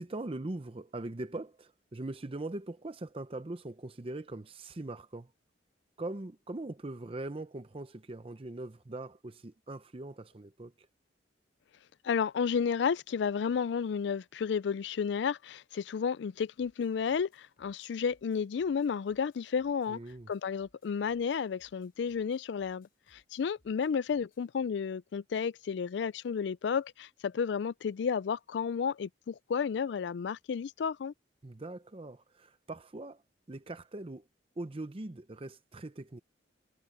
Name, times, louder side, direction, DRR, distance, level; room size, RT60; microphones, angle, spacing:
voice 1, 0.0-5.3 6.0-10.9 19.9-20.3 31.4-33.2 33.5-34.2 34.6-36.2, right 2 dB, 30° right, 0.6 m, -41 dB
voice 2, 12.0-20.0 20.3-31.1, left 6 dB, 65° left, 0.3 m, -32 dB
sound 1, 16.6-24.5, left 2 dB, 50° left, 7.9 m, -71 dB
head